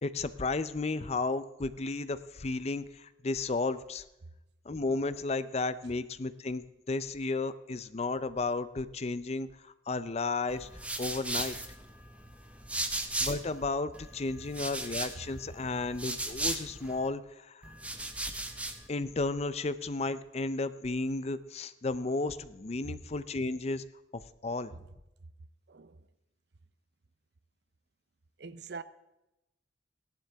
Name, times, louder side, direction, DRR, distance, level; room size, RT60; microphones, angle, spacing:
voice 1, 0.0-4.0 4.7-10.7 11.0-11.6 13.2-17.7 18.9-23.8 24.1-24.7, left 3 dB, 35° left, 0.5 m, -33 dB
sound 1, 10.5-13.6 13.9-17.1 17.6-18.9, right 2 dB, 5° right, 0.9 m, -37 dB
voice 2, 25.7-26.0 28.4-28.8, right 4 dB, 65° right, 0.6 m, -43 dB
16.5 x 11.5 x 3.5 m
head